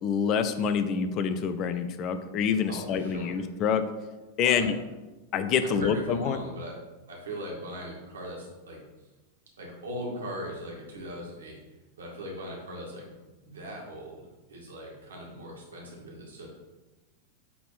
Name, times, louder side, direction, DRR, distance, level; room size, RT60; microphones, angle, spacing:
voice 1, 0.0-3.8 4.4-4.7 5.3-6.4, left 7 dB, 35° left, 10 dB, 0.5 m, -26 dB
voice 2, 2.7-3.4 4.4-4.7 5.6-6.8 7.1-8.8 9.6-11.6 12.0-13.1 13.4-16.5, equal, 70° right, -2 dB, 2.0 m, -39 dB
8.5 x 3.6 x 4.1 m, 1.1 s
figure-of-eight pair, 90°, 0 cm